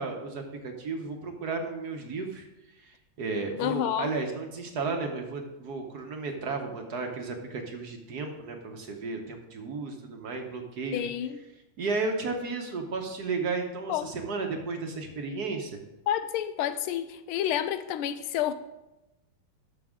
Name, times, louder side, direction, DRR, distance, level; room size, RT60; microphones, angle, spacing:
voice 1, 0.0-2.5 2.8-11.1 11.8-15.8, right 3 dB, 55° right, 1.3 m, -33 dB
voice 2, 3.6-4.1 10.9-11.4 13.9-14.2 16.1-18.5, left 10 dB, 85° left, 1.4 m, -29 dB
13.5 x 5.9 x 3.6 m
omnidirectional pair, 2.3 m